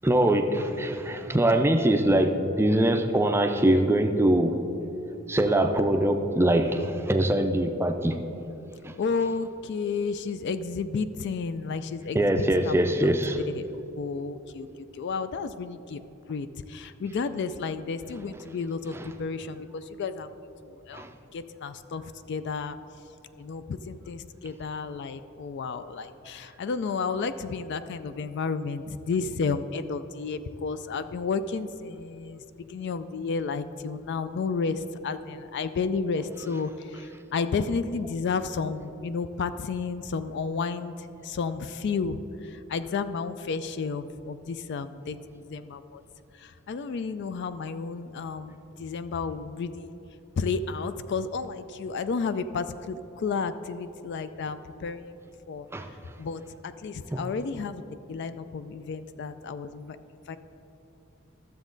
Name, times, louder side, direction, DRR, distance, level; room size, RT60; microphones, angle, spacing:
voice 1, 0.0-4.6 5.3-8.2 8.8-8.9 12.1-13.4 18.9-19.1 20.9-21.1 55.7-55.9 57.1-57.2, right 1 dB, 10° right, 6 dB, 0.4 m, -23 dB
voice 2, 9.0-12.2 12.6-12.7 13.5-13.6 14.0-14.7 14.9-16.0 16.3-21.0 21.3-22.0 22.3-22.8 23.4-41.0 41.2-45.2 45.5-46.0 46.4-49.9 50.4-55.1 55.5-55.7 56.2-57.8 58.1-60.0 60.3-60.4, left 5 dB, 55° left, 12 dB, 0.3 m, -32 dB
12.5 x 7.1 x 3.9 m, 2.9 s
head